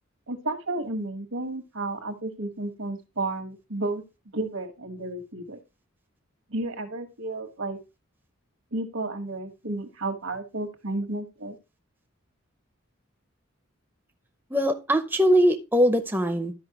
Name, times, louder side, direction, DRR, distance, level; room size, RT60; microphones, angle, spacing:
voice 1, 0.3-4.0 4.3-5.6 6.5-7.8 8.7-11.6, right 2 dB, 80° right, 6 dB, 1.5 m, -32 dB
voice 2, 14.5-16.5, equal, 10° right, 5 dB, 0.6 m, -21 dB
13.0 x 5.4 x 2.9 m, 0.27 s
head